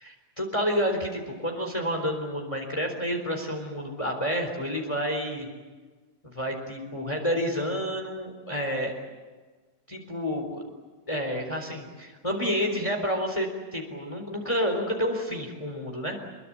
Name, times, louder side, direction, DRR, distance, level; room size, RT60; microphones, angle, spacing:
voice 1, 0.4-5.5 6.2-8.9 9.9-10.6 11.1-16.2, equal, 15° left, 2 dB, 4.1 m, -29 dB
26.5 x 22.0 x 9.0 m, 1.3 s
omnidirectional pair, 1.9 m